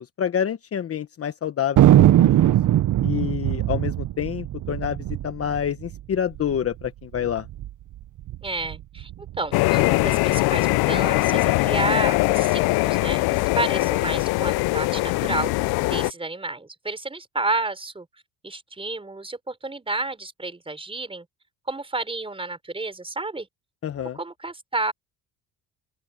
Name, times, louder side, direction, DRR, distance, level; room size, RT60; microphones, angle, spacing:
voice 1, 0.2-2.3 3.0-7.5 23.8-24.2, left 9 dB, 35° left, 1.0 m, -28 dB
Thunder, 1.8-6.6 6.8-6.9 7.1-7.7 8.2-9.4, right 12 dB, 50° right, 1.0 m, -20 dB
voice 2, 8.4-9.1 9.4-18.1 18.4-21.3 21.7-23.5 24.1-24.9, right 3 dB, 15° right, 4.7 m, -30 dB
sound 1, 9.5-16.1, left 21 dB, 70° left, 0.5 m, -21 dB
open air
cardioid pair, 115°, 38 cm